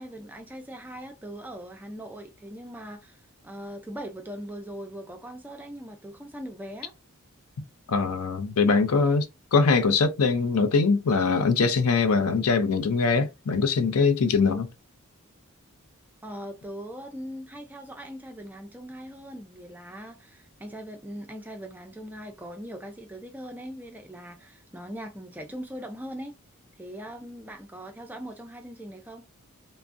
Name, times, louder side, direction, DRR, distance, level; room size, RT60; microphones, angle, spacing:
voice 1, 0.0-6.9 16.2-26.3 26.8-29.2, equal, 10° right, 0.4 m, -40 dB
voice 2, 7.9-9.3 9.5-14.7, left 4 dB, 85° left, 0.5 m, -22 dB
3.4 x 2.0 x 2.5 m
head